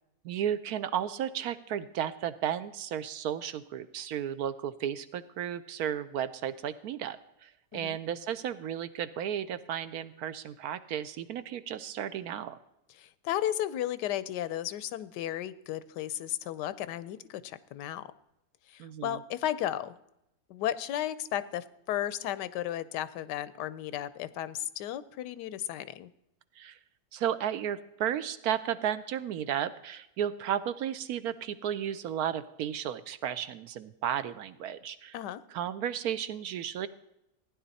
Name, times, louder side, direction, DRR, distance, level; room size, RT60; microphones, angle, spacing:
voice 1, 0.2-12.6 18.8-19.2 26.6-26.8 27.1-35.2 35.5-36.9, right 9 dB, 70° right, 13 dB, 1.0 m, -34 dB
voice 2, 13.0-18.1 18.7-20.0 20.5-26.1 35.1-35.4, left 12 dB, 85° left, 16 dB, 1.2 m, -34 dB
15.5 x 10.0 x 4.1 m, 0.85 s
omnidirectional pair, 1.8 m